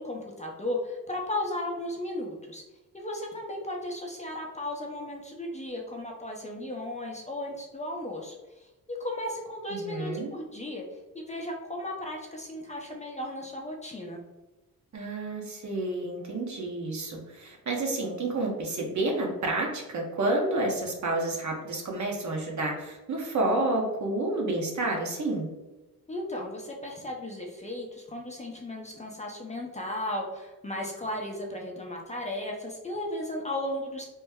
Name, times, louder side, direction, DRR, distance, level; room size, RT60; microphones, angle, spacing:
voice 1, 0.0-2.6 2.9-14.2 26.1-34.0, left 1 dB, 20° left, 0 dB, 0.6 m, -35 dB
voice 2, 9.7-10.3 14.9-25.5, right 2 dB, 50° right, 0 dB, 1.0 m, -30 dB
3.1 x 2.1 x 3.5 m, 1.1 s
cardioid pair, 65°, 37 cm